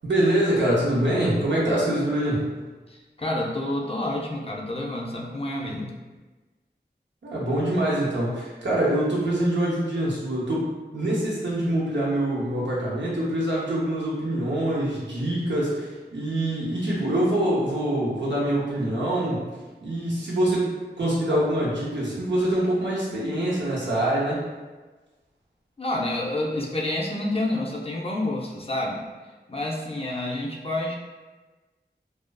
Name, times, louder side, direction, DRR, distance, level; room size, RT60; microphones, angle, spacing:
voice 1, 0.0-2.4 7.2-19.4 19.8-20.7 21.0-24.4, right 1 dB, 90° right, -6 dB, 0.7 m, -24 dB
voice 2, 2.9-5.9 25.8-29.1 29.5-31.0, left 1 dB, 35° left, -2 dB, 0.4 m, -29 dB
2.4 x 2.3 x 2.2 m, 1.3 s
wide cardioid pair, 45°, 18 cm